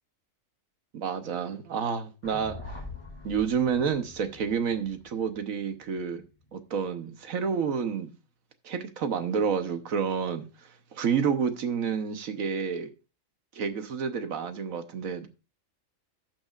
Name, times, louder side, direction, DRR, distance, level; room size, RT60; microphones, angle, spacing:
voice 1, 0.9-2.8 3.2-6.2 6.5-8.1 8.6-10.5 10.9-12.9 13.5-15.3, right 6 dB, 85° right, 1.4 m, -29 dB
sound 1, 2.2-6.5, left 2 dB, 20° left, 2.6 m, -44 dB
17.0 x 6.1 x 2.4 m
omnidirectional pair, 1.4 m